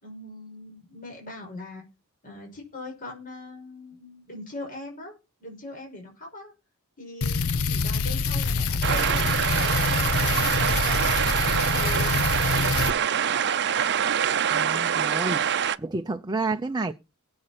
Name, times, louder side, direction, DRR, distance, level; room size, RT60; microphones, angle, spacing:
voice 1, 0.0-1.8 2.2-6.5 7.0-12.2 12.5-13.0, left 1 dB, 40° left, 5.8 m, -41 dB
sound 1, 7.2-12.9, left 4 dB, 70° left, 0.7 m, -26 dB
sound 2, 8.8-15.8, right 8 dB, 55° right, 0.7 m, -25 dB
voice 2, 14.5-16.9, right 3 dB, 20° right, 0.7 m, -30 dB
21.0 x 7.7 x 4.3 m
head